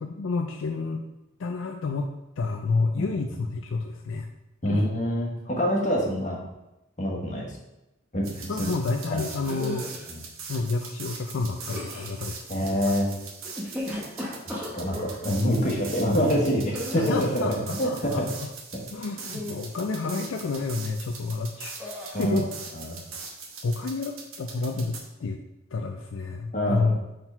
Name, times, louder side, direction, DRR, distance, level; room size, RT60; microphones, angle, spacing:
voice 1, 0.0-1.0 1.4-4.3 4.6-4.8 8.5-9.9 10.5-13.0 16.9-18.5 18.9-21.9 22.2-22.5 23.6-25.4 25.7-27.0, left 3 dB, 70° left, 3 dB, 0.4 m, -30 dB
voice 2, 4.6-6.4 7.0-7.6 8.1-8.5 9.1-9.2 10.1-10.2 12.5-13.2 14.7-18.3 22.1-22.5 22.7-23.0 26.5-26.9, equal, 35° left, -2 dB, 1.4 m, -26 dB
sound 1, 8.2-25.0, right 5 dB, 85° right, 1.1 m, -41 dB
sound 2, 9.4-10.1 11.6-12.2 13.4-15.2 16.7-17.4 19.2-19.7 20.0-20.4 21.8-22.2, left 1 dB, 5° right, 1.0 m, -36 dB
4.4 x 3.8 x 5.6 m, 0.96 s
head